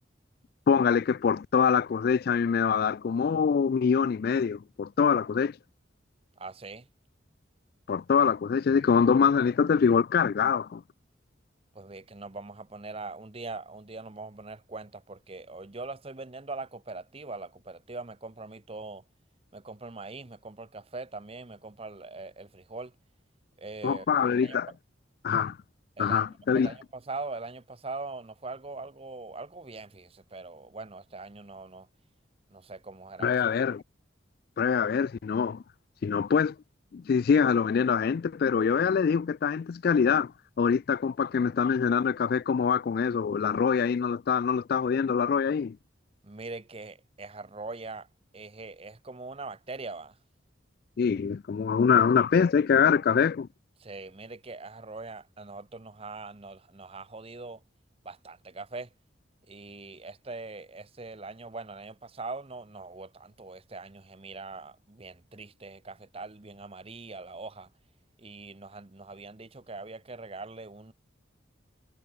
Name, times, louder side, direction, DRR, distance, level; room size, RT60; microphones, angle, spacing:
voice 1, 0.7-5.6 7.9-10.8 23.8-24.7 25.2-25.6 26.0-26.7 33.2-33.8 34.6-35.6 36.0-36.6 36.9-40.3 40.6-45.8 51.0-53.5, left 6 dB, 50° left, 0.3 m, -24 dB
voice 2, 6.4-6.9 11.7-19.0 19.5-22.9 23.6-24.1 24.3-24.6 26.0-26.2 26.5-31.9 32.5-33.3 33.6-33.7 46.2-48.1 48.3-50.2 53.8-57.6 58.0-58.9 59.5-67.7 68.2-70.9, right 3 dB, 30° right, 0.9 m, -42 dB
head